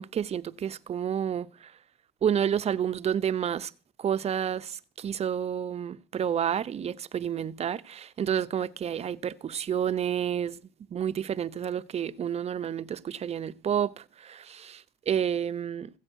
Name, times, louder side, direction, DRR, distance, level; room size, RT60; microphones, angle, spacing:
voice 1, 0.0-1.5 2.2-3.7 4.0-10.6 10.9-14.8 15.1-15.9, right 9 dB, 40° right, 0.7 m, -30 dB
15.5 x 7.9 x 6.3 m
cardioid pair, 110°, 17 cm